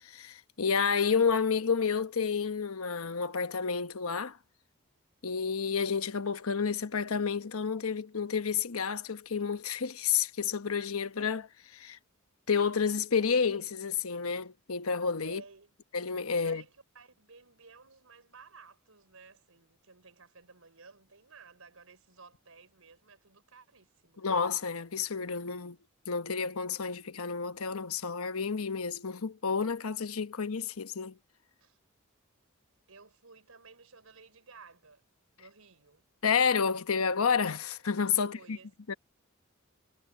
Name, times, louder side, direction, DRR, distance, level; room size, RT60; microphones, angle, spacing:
voice 1, 0.0-4.4 5.2-12.0 12.5-15.4 15.9-16.6 24.2-25.8 26.1-31.2 36.2-38.6 38.9-39.0, left 6 dB, 85° left, 1.0 m, -30 dB
voice 2, 15.2-15.8 16.3-24.3 30.3-30.5 31.6-31.8 32.9-35.0 35.4-36.0 38.2-38.7, right 4 dB, 75° right, 5.1 m, -55 dB
head